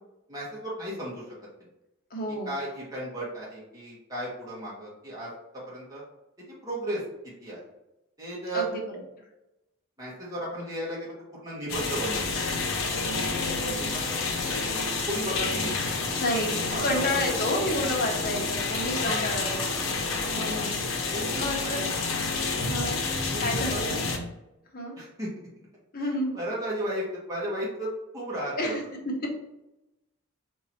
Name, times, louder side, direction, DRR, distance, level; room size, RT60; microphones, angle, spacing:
voice 1, 0.3-1.3 2.4-6.0 6.6-7.0 7.4-7.6 8.2-8.7 10.0-12.4 13.0-15.7 16.3-16.4 16.7-16.8 17.1-17.4 19.0-19.2 21.1-21.8 23.0-23.8 25.0-25.3 26.0-28.7, right 1 dB, 15° right, -6 dB, 1.4 m, -35 dB
voice 2, 2.1-2.6 8.5-8.8 16.2-16.6 16.8-19.9 20.3-20.7 21.4-21.9 22.6-23.0 23.4-24.0 24.7-25.0 25.9-26.3 28.6-28.8, left 1 dB, 45° left, 0 dB, 1.1 m, -30 dB
sound 1, 11.7-24.2, left 3 dB, 70° left, 0.9 m, -29 dB
3.9 x 2.9 x 4.3 m, 0.94 s
head